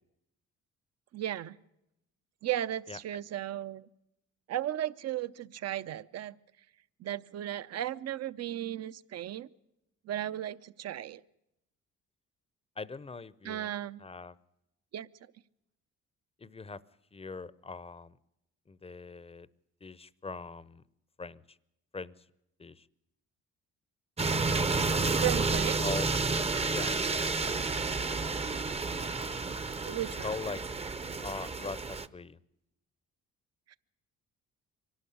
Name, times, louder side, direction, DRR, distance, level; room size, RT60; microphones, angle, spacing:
voice 1, 1.1-1.6 2.4-3.9 4.5-6.4 7.0-9.5 10.0-11.2 13.4-14.0 14.9-15.1 25.2-25.8 29.8-30.3 33.7-33.8, right 12 dB, 55° right, 16 dB, 0.7 m, -35 dB
voice 2, 12.8-13.7 14.0-14.4 16.4-16.8 17.1-18.2 18.7-19.5 19.8-20.8 21.2-21.6 21.9-22.1 22.6-22.9 25.8-26.1 26.7-27.0 30.2-30.6 31.2-32.4, left 4 dB, 20° left, 19 dB, 0.7 m, -41 dB
sound 1, 24.2-32.1, right 3 dB, 20° right, 0.7 m, -30 dB
24.0 x 12.5 x 9.9 m, 0.86 s
cardioid pair, 90°, 30 cm